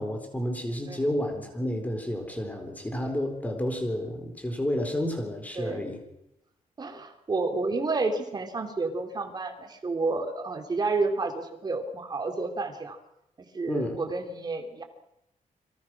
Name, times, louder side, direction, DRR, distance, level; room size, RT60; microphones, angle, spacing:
voice 1, 0.0-6.0 13.7-14.0, left 1 dB, 10° left, 4 dB, 4.2 m, -30 dB
voice 2, 6.8-13.0 13.5-14.8, right 3 dB, 30° right, 5 dB, 3.6 m, -30 dB
30.0 x 23.0 x 6.3 m, 0.83 s
wide cardioid pair, 180°, 14 cm